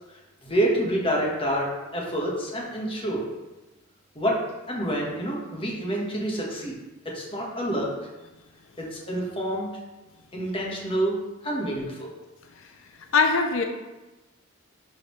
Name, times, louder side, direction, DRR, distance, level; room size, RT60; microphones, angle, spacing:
voice 1, 0.4-3.2 4.1-4.4 4.7-6.8 7.0-7.9 8.8-9.7 10.3-11.2 11.4-12.1, right 1 dB, 25° left, -3 dB, 1.4 m, -27 dB
voice 2, 13.1-13.6, left 4 dB, 80° left, 5 dB, 0.6 m, -22 dB
11.0 x 4.1 x 3.2 m, 1.1 s
head